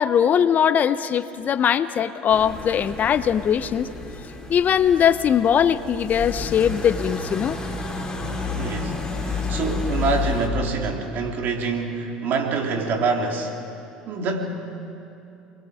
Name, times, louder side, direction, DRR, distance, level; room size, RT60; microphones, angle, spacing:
voice 1, 0.0-3.9 4.5-7.6, left 8 dB, 45° left, 13 dB, 0.8 m, -20 dB
sound 1, 2.3-10.5, left 4 dB, 20° left, 6.3 m, -31 dB
voice 2, 8.5-13.6 14.1-14.6, right 4 dB, 55° right, 2 dB, 3.5 m, -26 dB
29.0 x 22.5 x 5.2 m, 2.8 s
hypercardioid pair, 75°, 4 cm